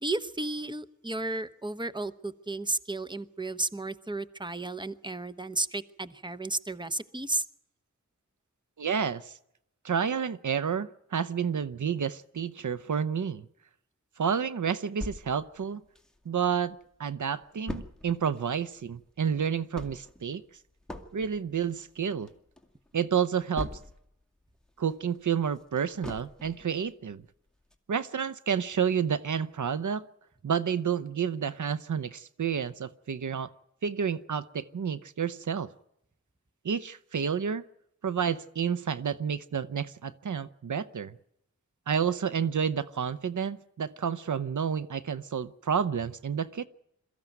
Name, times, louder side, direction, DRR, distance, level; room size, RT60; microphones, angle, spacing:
voice 1, 0.0-7.4, right 2 dB, 15° right, 1.0 m, -33 dB
voice 2, 8.8-9.3 9.8-13.5 14.2-15.8 16.3-20.4 21.1-22.3 22.9-23.7 24.8-27.2 27.9-30.1 30.4-33.5 33.8-35.7 36.6-37.6 38.0-41.2 41.9-46.7, right 7 dB, 80° right, 0.8 m, -30 dB
sound 1, 15.0-16.5 16.9-17.0 17.2-24.2 24.6-26.8 27.2-27.3 27.7-27.8, left 1 dB, ahead, 2.1 m, -42 dB
22.5 x 14.5 x 9.3 m
wide cardioid pair, 60°, 30 cm